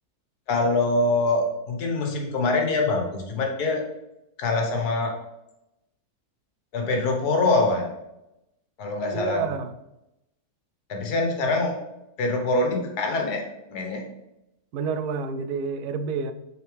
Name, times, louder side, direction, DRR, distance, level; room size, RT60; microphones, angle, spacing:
voice 1, 0.5-3.8 4.4-5.1 6.7-7.9 8.8-9.4 10.9-11.8 12.2-13.4 13.7-14.0, left 2 dB, 90° left, 2 dB, 1.7 m, -24 dB
voice 2, 9.1-9.7 14.7-16.3, right 5 dB, 85° right, 10 dB, 1.1 m, -29 dB
7.0 x 4.0 x 3.3 m, 0.89 s
omnidirectional pair, 1.6 m